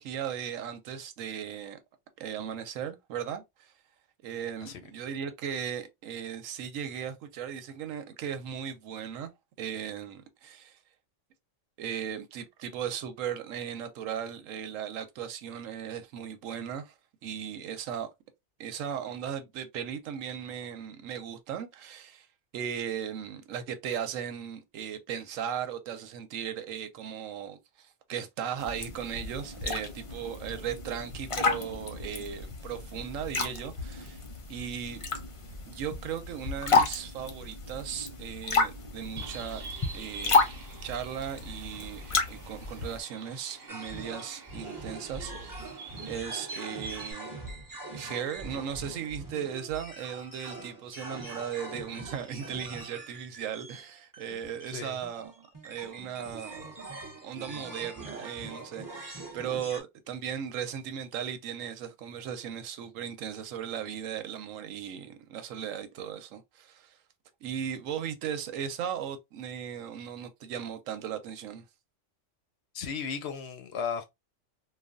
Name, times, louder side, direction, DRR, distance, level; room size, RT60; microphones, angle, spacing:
voice 1, 0.0-1.8 2.2-3.7 4.2-9.3 9.6-10.8 11.8-16.9 17.2-18.1 18.6-22.3 22.5-34.2 34.5-35.0 35.7-39.6 39.9-40.5 40.8-45.8 46.0-47.4 47.9-55.3 55.6-56.8 57.2-67.0 67.4-71.7, right 8 dB, 90° right, 1.0 m, -37 dB
sound 1, 28.6-43.0, left 4 dB, 45° left, 0.4 m, -32 dB
Bird, 39.2-47.1, right 4 dB, 55° right, 1.0 m, -45 dB
sound 2, 43.7-59.8, right 2 dB, 20° right, 0.7 m, -43 dB
voice 2, 72.7-74.0, left 6 dB, 65° left, 0.7 m, -35 dB
3.2 x 2.2 x 2.4 m
omnidirectional pair, 1.3 m